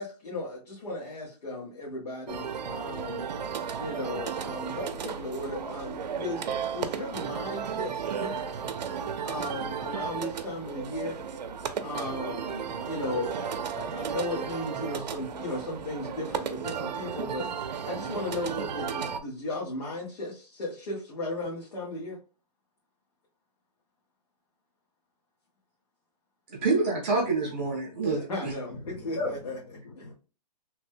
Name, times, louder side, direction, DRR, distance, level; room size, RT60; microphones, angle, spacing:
voice 1, 0.0-3.3 3.8-8.6 9.2-11.2 11.8-22.2 28.3-29.6 30.0-30.1, left 1 dB, 70° left, 1.2 m, -36 dB
sound 1, 2.3-19.2, right 7 dB, 85° right, 0.5 m, -34 dB
voice 2, 26.5-28.5, right 3 dB, 15° right, 0.5 m, -27 dB
voice 3, 28.8-30.1, left 3 dB, 35° left, 0.9 m, -37 dB
3.0 x 2.1 x 3.2 m
hypercardioid pair, 180°, 21 cm